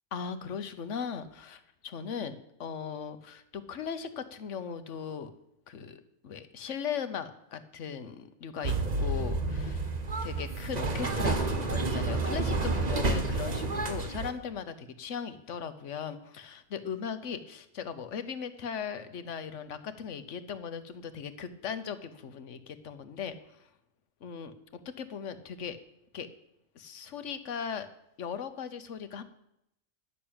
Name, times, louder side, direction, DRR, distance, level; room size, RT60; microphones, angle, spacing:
voice 1, 0.1-5.3 5.7-9.8 10.2-23.6 24.2-24.5 25.0-25.8 26.1-26.3 26.7-27.9 28.2-29.2, left 7 dB, 70° left, 11 dB, 1.2 m, -38 dB
sound 1, 8.6-14.3, right 3 dB, 35° right, 1.1 m, -30 dB
10.5 x 6.7 x 8.7 m, 0.80 s
omnidirectional pair, 1.3 m